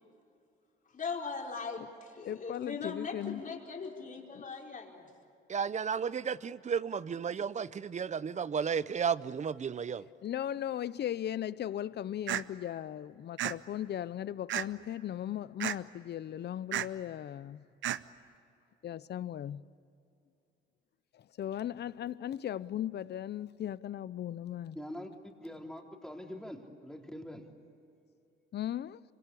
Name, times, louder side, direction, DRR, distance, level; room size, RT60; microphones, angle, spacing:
voice 1, 0.9-5.1, left 5 dB, 40° left, 4.7 m, -40 dB
voice 2, 2.2-3.4 4.4-4.5 10.2-17.6 18.8-19.6 21.1-24.8 28.5-29.0, left 11 dB, 60° left, 0.7 m, -37 dB
voice 3, 5.5-10.0, right 7 dB, 35° right, 0.8 m, -33 dB
sound 1, 12.3-12.4 13.4-13.5 14.5-14.8 15.6-15.8 16.7-16.9 17.8-18.0, right 12 dB, 75° right, 0.8 m, -32 dB
voice 4, 24.7-25.1 25.4-27.5, left 1 dB, 5° left, 3.5 m, -44 dB
26.0 x 25.5 x 8.5 m
cardioid pair, 90°, 20 cm